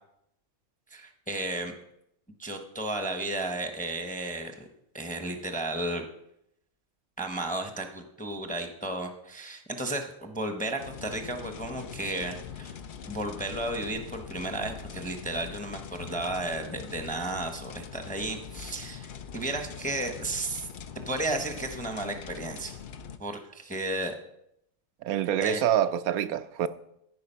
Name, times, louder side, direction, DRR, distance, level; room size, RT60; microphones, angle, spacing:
voice 1, 0.9-1.7 2.4-4.7 4.9-6.0 7.2-12.8 13.1-20.7 21.1-22.7 23.2-24.2 25.4-25.6, right 2 dB, 10° left, 0.7 m, -33 dB
sound 1, 10.8-23.2, left 7 dB, 65° left, 0.5 m, -43 dB
voice 2, 25.0-26.7, right 10 dB, 85° right, 1.0 m, -26 dB
14.0 x 4.8 x 5.5 m
omnidirectional pair, 1.5 m